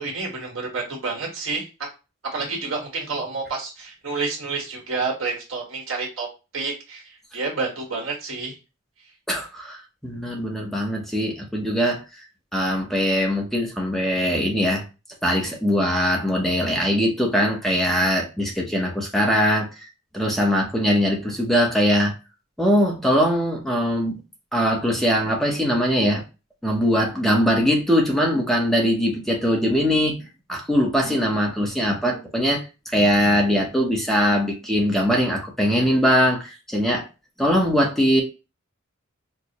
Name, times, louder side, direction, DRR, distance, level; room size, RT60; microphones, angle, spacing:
voice 1, 0.0-1.7 2.3-6.3 6.5-8.6, right 4 dB, 90° right, -1 dB, 1.4 m, -29 dB
voice 2, 9.3-12.0 12.5-14.8 15.2-19.7 20.1-22.1 22.6-24.2 24.5-26.2 26.6-30.2 30.5-37.1 37.4-38.2, equal, ahead, 0 dB, 0.7 m, -21 dB
4.4 x 2.0 x 2.8 m, 0.29 s
head